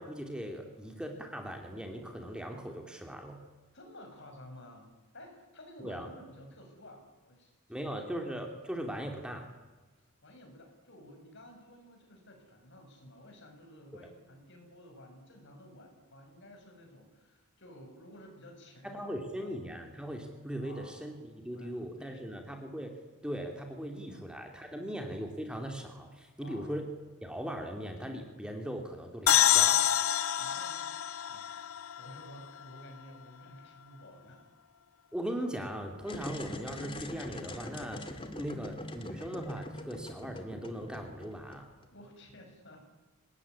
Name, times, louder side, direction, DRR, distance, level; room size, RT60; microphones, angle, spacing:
voice 1, 0.0-3.4 5.8-6.1 7.7-9.5 18.8-22.9 23.2-26.8 27.2-29.8 35.1-41.7, equal, 5° right, 3 dB, 2.7 m, -39 dB
voice 2, 3.7-7.9 8.2-8.3 10.0-19.5 20.6-21.1 21.5-22.3 24.1-24.2 26.4-26.7 30.3-34.4 41.9-42.9, left 1 dB, 55° left, 3 dB, 7.4 m, -53 dB
sound 1, 29.3-32.8, left 11 dB, 75° left, 0.8 m, -27 dB
sound 2, 36.0-41.9, left 1 dB, 25° left, 2.3 m, -43 dB
26.0 x 20.0 x 9.9 m, 1.2 s
head